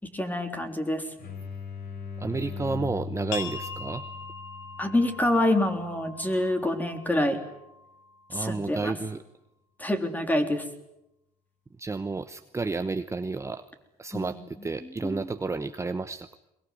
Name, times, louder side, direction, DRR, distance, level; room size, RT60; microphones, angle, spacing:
voice 1, 0.0-1.1 4.8-7.4 8.3-9.0 9.8-10.6 14.1-14.3 15.0-15.3, left 1 dB, 10° left, 6 dB, 3.6 m, -26 dB
sound 1, 1.2-6.7, left 5 dB, 65° left, 6.7 m, -40 dB
voice 2, 2.2-4.0 8.3-9.2 11.8-13.6 14.0-16.4, right 3 dB, 15° right, 10 dB, 0.9 m, -31 dB
sound 2, 3.3-8.7, left 4 dB, 90° left, 3.2 m, -42 dB
22.5 x 21.5 x 9.5 m, 0.87 s
cardioid pair, 110°, 17 cm